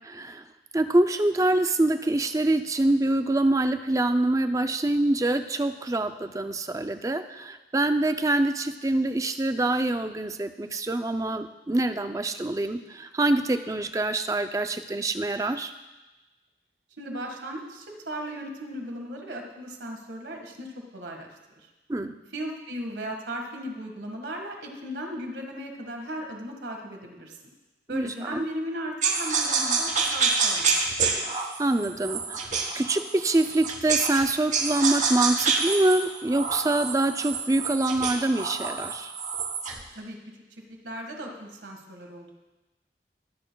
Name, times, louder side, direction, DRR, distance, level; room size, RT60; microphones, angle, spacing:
voice 1, 0.1-0.4 0.7-15.7 21.9-22.2 27.9-28.5 31.2-39.1, right 2 dB, 20° right, 9 dB, 0.4 m, -25 dB
voice 2, 17.0-20.7 20.9-21.3 22.3-27.4 27.9-30.7 39.9-40.2 40.8-42.3, equal, 85° right, 2 dB, 1.7 m, -36 dB
sound 1, 29.0-34.2 34.5-39.8, right 4 dB, 40° right, 1.0 m, -27 dB
22.0 x 8.3 x 2.3 m, 1.1 s
head